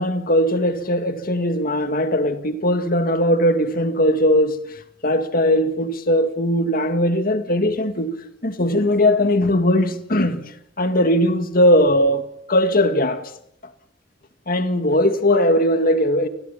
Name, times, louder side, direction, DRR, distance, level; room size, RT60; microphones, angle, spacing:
voice 1, 0.0-4.6 5.0-8.2 8.4-10.4 10.8-13.2 14.5-16.3, left 1 dB, 50° left, 1.9 m, -19 dB
29.0 x 20.5 x 5.8 m
head